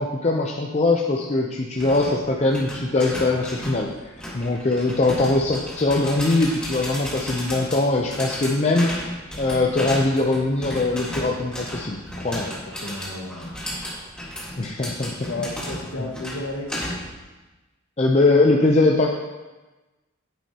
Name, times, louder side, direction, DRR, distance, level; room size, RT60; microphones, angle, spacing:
voice 1, 0.0-3.9 4.3-9.1 9.4-12.5 14.6-15.1 18.0-19.1, left 2 dB, 30° left, 0 dB, 0.6 m, -21 dB
sound 1, 1.8-17.2, equal, 5° left, 1.6 m, -34 dB
voice 2, 12.3-13.5 15.2-16.8, left 2 dB, 75° left, -1 dB, 1.7 m, -33 dB
10.5 x 8.8 x 2.9 m, 1.2 s
head